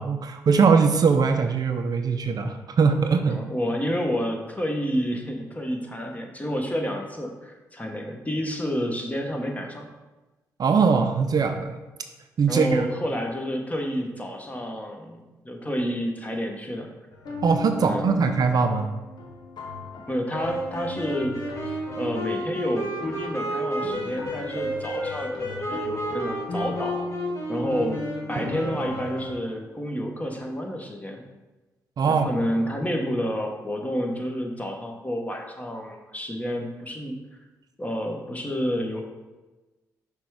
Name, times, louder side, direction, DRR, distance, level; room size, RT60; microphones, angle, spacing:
voice 1, 0.0-3.4 10.6-11.7 12.4-12.9 17.4-18.9 32.0-32.3, right 5 dB, 55° right, 7 dB, 0.5 m, -21 dB
voice 2, 3.3-9.8 12.5-16.9 17.8-18.2 20.1-27.1 27.5-31.2 32.1-37.2 37.8-39.0, equal, 20° left, 2 dB, 1.4 m, -29 dB
sound 1, 17.1-29.3, left 3 dB, 65° left, 1.1 m, -38 dB
sound 2, 20.4-29.5, right 1 dB, 40° left, 2.0 m, -32 dB
5.9 x 3.5 x 4.8 m, 1.1 s
supercardioid pair, 45°, 8 cm